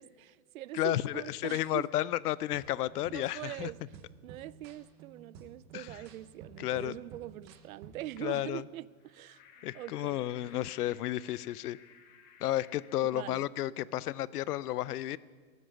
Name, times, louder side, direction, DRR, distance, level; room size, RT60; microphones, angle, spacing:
voice 1, 0.0-1.9 3.1-3.8 4.2-9.4 9.7-10.2 13.0-13.5, right 14 dB, 70° right, 0.5 m, -43 dB
voice 2, 0.7-3.7 5.7-5.9 6.6-7.0 8.2-8.6 9.6-11.8 12.4-15.2, left 14 dB, 90° left, 0.6 m, -32 dB
sound 1, 2.5-8.2, right 6 dB, 20° right, 0.6 m, -53 dB
sound 2, 9.0-13.0, left 7 dB, 35° left, 1.6 m, -58 dB
13.5 x 9.5 x 9.4 m
supercardioid pair, 165°, 44 cm